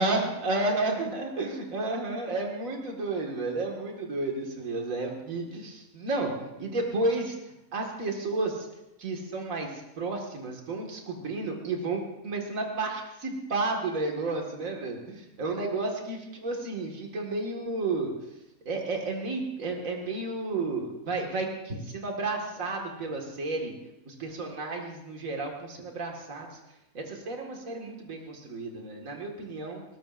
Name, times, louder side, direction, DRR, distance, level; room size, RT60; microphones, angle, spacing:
voice 1, 0.0-7.4 7.7-8.7 9.0-9.7 10.0-18.1 18.7-23.7 24.1-26.5 26.9-29.8, right 2 dB, 65° right, 1 dB, 2.3 m, -32 dB
21.5 x 18.5 x 2.6 m, 0.90 s
omnidirectional pair, 1.5 m